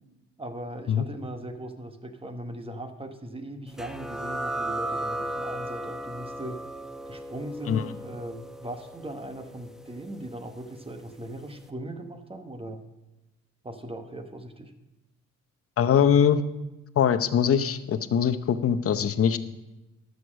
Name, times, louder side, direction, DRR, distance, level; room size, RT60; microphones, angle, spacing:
voice 1, 0.4-6.6 7.1-12.8 13.6-14.7, right 1 dB, 20° right, 7 dB, 1.2 m, -39 dB
sound 1, 3.8-11.0, right 1 dB, ahead, 0.8 m, -36 dB
voice 2, 15.8-16.4 17.0-19.4, left 8 dB, 50° left, 12 dB, 0.8 m, -22 dB
12.5 x 6.6 x 6.2 m, 1.0 s
cardioid pair, 90°, 30 cm